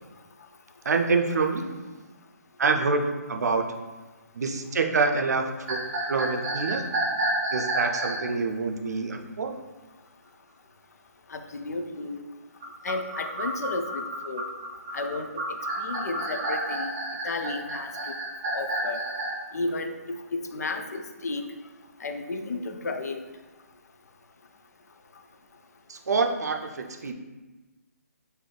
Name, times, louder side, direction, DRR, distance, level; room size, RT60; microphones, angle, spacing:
voice 1, 0.8-1.7 2.6-3.7 4.3-6.8 7.5-9.5 25.9-27.1, right 4 dB, 85° right, 3 dB, 0.5 m, -26 dB
sound 1, 5.7-8.2 12.6-19.3, right 1 dB, 15° right, 0.5 m, -30 dB
voice 2, 11.3-12.2 12.8-14.5 14.9-15.4 15.8-16.9 17.2-17.9 18.5-19.0 19.5-21.4 22.0-23.2, left 3 dB, 80° left, 6 dB, 0.4 m, -33 dB
3.9 x 2.6 x 3.3 m, 1.2 s
hypercardioid pair, 180°, 9 cm